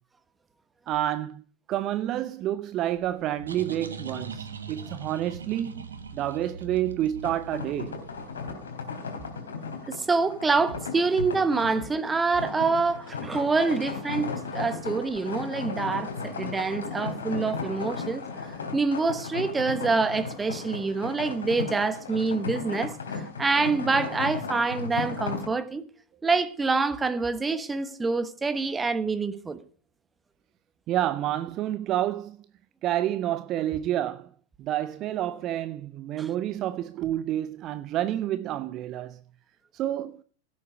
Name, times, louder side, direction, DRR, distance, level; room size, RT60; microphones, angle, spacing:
voice 1, 0.9-1.4 1.7-8.0 14.7-14.8 30.9-32.4 32.8-34.3 34.6-39.2 39.7-40.2, right 12 dB, 35° right, 0.6 m, -29 dB
sound 1, 3.0-8.5, right 4 dB, 70° right, 1.8 m, -40 dB
sound 2, 7.2-25.4, left 5 dB, 70° left, 3.7 m, -36 dB
voice 2, 9.9-25.8 26.2-29.6 36.2-36.3, right 4 dB, 15° right, 1.2 m, -26 dB
17.0 x 8.6 x 4.9 m
figure-of-eight pair, 90°, 0 cm